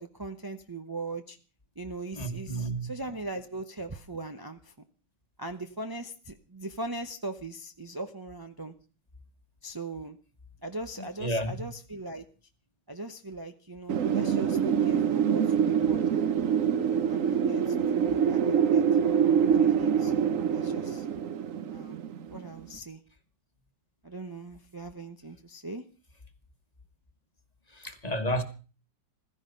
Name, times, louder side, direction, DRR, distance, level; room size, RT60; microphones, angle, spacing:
voice 1, 0.0-1.4 1.8-4.7 5.4-8.7 9.6-10.2 10.6-12.2 12.9-16.6 17.1-18.4 18.7-18.8 19.6-21.1 21.7-22.0 22.3-23.0 24.0-25.8, right 2 dB, 25° right, 0.4 m, -40 dB
voice 2, 2.1-2.9 11.2-11.5 27.7-28.4, right 1 dB, 20° left, 1.5 m, -31 dB
Wind, 13.9-22.6, right 7 dB, 50° right, 1.1 m, -25 dB
16.0 x 14.5 x 5.3 m
omnidirectional pair, 2.0 m